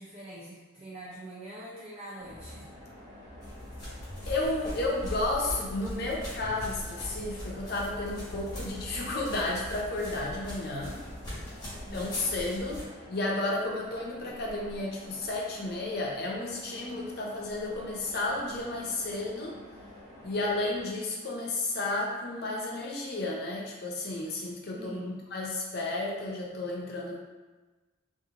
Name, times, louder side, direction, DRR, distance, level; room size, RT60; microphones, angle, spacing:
voice 1, 0.0-2.7 11.7-12.3 24.7-25.2, right 1 dB, 30° right, -9 dB, 0.5 m, -44 dB
sound 1, 2.2-20.9, left 1 dB, 55° right, 1.0 m, -49 dB
sound 2, 3.4-12.8, equal, 20° left, 1.0 m, -40 dB
voice 2, 4.3-11.0 11.9-19.6 20.2-27.2, left 2 dB, 50° left, -2 dB, 0.5 m, -32 dB
2.6 x 2.5 x 2.8 m, 1.2 s
head